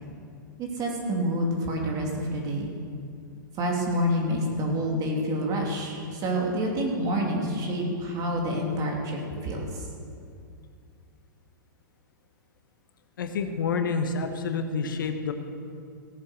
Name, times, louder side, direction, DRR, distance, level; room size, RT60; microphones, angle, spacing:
voice 1, 0.6-2.7 3.6-9.9, equal, 35° right, 0 dB, 3.1 m, -28 dB
voice 2, 13.2-15.3, left 5 dB, 80° left, 7 dB, 1.2 m, -28 dB
17.5 x 7.7 x 6.5 m, 2.4 s
hypercardioid pair, 115°, 11 cm